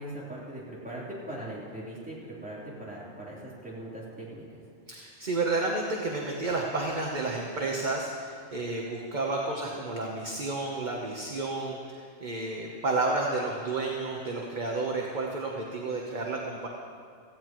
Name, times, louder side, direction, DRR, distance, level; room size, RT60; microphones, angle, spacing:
voice 1, 0.0-4.4, right 1 dB, 5° right, -8 dB, 3.6 m, -40 dB
voice 2, 4.9-16.7, right 3 dB, 40° right, -1 dB, 1.2 m, -31 dB
17.5 x 15.5 x 3.1 m, 2.3 s
omnidirectional pair, 1.3 m